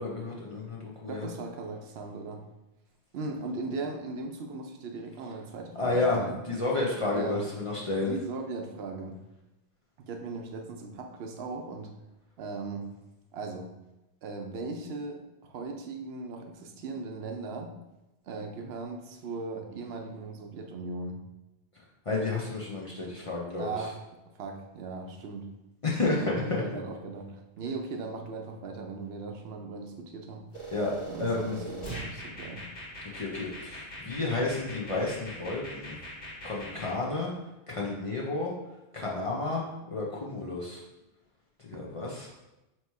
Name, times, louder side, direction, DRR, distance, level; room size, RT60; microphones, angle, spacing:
voice 1, 0.0-1.3 5.8-6.2 6.5-8.1 22.1-23.9 25.8-26.6 30.7-31.6 33.1-36.0 36.4-37.3 37.7-38.5 38.9-40.8 41.7-42.3, left 2 dB, 40° left, -4 dB, 0.5 m, -31 dB
voice 2, 1.1-2.4 3.1-6.4 7.1-7.5 7.8-9.2 10.0-11.9 12.4-12.9 13.3-13.7 14.2-17.7 18.2-21.2 23.6-24.0 24.3-25.5 26.1-30.5 31.1-32.7, right 3 dB, 75° right, 3 dB, 0.8 m, -38 dB
sound 1, 30.5-36.9, equal, 70° left, 1.7 m, -41 dB
3.0 x 2.8 x 4.5 m, 0.98 s
omnidirectional pair, 1.1 m